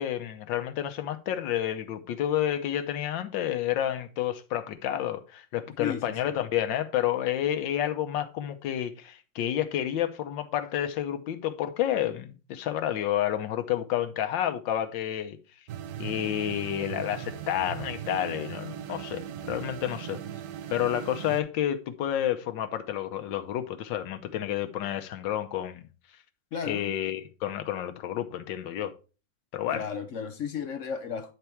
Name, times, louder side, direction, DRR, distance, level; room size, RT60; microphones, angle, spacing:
voice 1, 0.0-15.4 16.0-20.2 20.7-25.8 26.6-28.9 29.5-29.8, left 11 dB, 90° left, 1.5 m, -30 dB
voice 2, 5.8-6.4 26.5-26.9 29.7-31.3, left 7 dB, 60° left, 0.8 m, -34 dB
sound 1, 15.7-21.4, right 10 dB, 65° right, 1.1 m, -38 dB
8.3 x 4.5 x 4.4 m
omnidirectional pair, 2.0 m